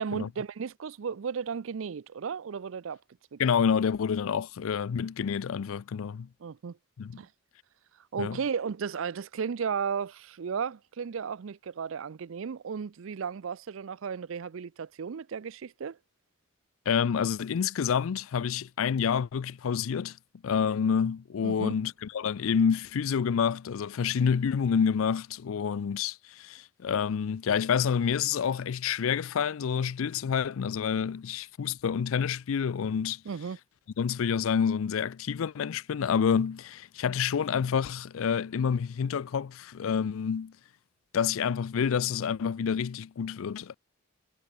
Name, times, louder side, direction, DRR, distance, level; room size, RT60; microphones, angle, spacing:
voice 1, 0.0-3.0 3.3-3.4 6.4-6.8 7.2-7.3 8.1-16.0 21.4-21.7 33.3-33.6, right 6 dB, 75° right, 0.5 m, -34 dB
voice 2, 3.4-6.3 7.0-7.2 8.2-8.4 16.9-20.2 20.4-33.2 34.0-40.5 41.1-43.7, left 7 dB, 85° left, 0.4 m, -28 dB
head